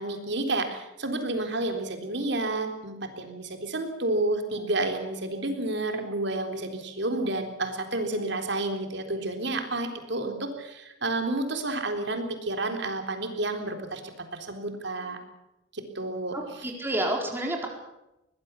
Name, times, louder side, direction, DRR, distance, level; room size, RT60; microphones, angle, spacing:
voice 1, 0.0-14.0 14.3-15.2 15.7-16.4, right 2 dB, 60° right, 5 dB, 3.8 m, -30 dB
voice 2, 16.3-17.7, right 1 dB, 10° right, 0 dB, 4.5 m, -29 dB
22.5 x 20.0 x 7.0 m, 0.89 s
head